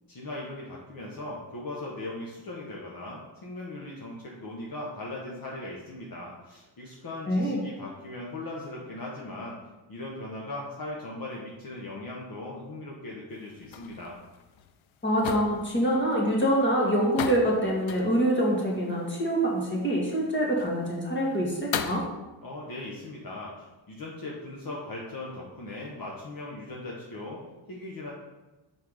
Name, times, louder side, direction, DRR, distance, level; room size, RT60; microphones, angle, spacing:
voice 1, 0.1-9.6 9.9-14.2 22.4-27.4 27.7-28.1, left 2 dB, 50° left, -3 dB, 1.3 m, -39 dB
voice 2, 7.3-7.6 15.0-22.0, right 1 dB, 25° left, -3 dB, 2.0 m, -25 dB
sound 1, 13.3-22.1, left 8 dB, 85° left, 0.7 m, -39 dB
5.8 x 4.6 x 5.0 m, 1.1 s
cardioid pair, 105°, 46 cm